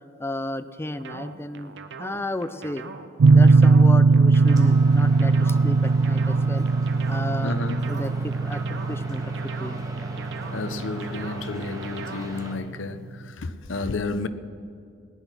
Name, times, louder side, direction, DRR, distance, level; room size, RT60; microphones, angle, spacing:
voice 1, 0.2-1.7 2.0-2.9 3.3-6.7 7.1-7.6 7.9-9.9, left 1 dB, 15° left, 0.5 m, -33 dB
sound 1, 1.0-12.5, right 5 dB, 65° right, 0.8 m, -41 dB
sound 2, 3.2-11.9, right 4 dB, 85° right, 0.4 m, -19 dB
sound 3, 4.4-12.5, right 1 dB, 20° right, 1.6 m, -39 dB
voice 2, 7.4-7.9 10.4-14.3, left 3 dB, 75° left, 0.7 m, -31 dB
18.0 x 10.0 x 5.9 m
head